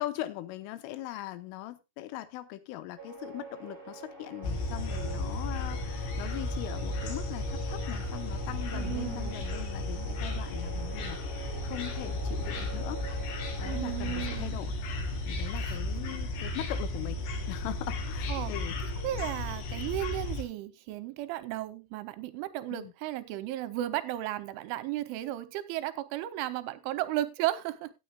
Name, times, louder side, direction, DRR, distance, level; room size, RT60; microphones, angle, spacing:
voice 1, 0.0-13.0 13.6-14.7 15.3-17.2 17.5-18.8 22.7-22.9, left 15 dB, 85° left, 3.4 m, -40 dB
sound 1, 3.0-14.4, right 4 dB, 20° right, 4.7 m, -45 dB
sound 2, 4.4-20.4, left 2 dB, 60° left, 4.1 m, -34 dB
voice 2, 8.7-9.4 13.6-14.6 15.6-15.8 18.3-18.5 19.0-27.9, right 14 dB, 80° right, 3.1 m, -34 dB
17.0 x 9.6 x 2.3 m
omnidirectional pair, 5.7 m